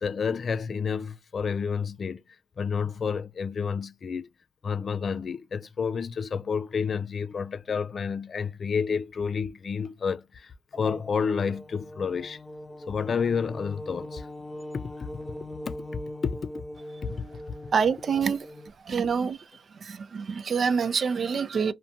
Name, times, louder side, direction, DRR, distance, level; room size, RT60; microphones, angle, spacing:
voice 1, 0.0-2.2 2.6-4.3 4.6-12.4 12.9-14.3 14.7-15.1 15.6-16.5 17.0-17.3, left 6 dB, 60° left, 0.4 m, -30 dB
sound 1, 10.7-18.7, left 1 dB, 15° left, 0.6 m, -41 dB
voice 2, 17.7-18.4 18.9-19.4 19.8-21.7, right 6 dB, 60° right, 0.3 m, -26 dB
2.5 x 2.2 x 2.7 m
supercardioid pair, 45°, 0 cm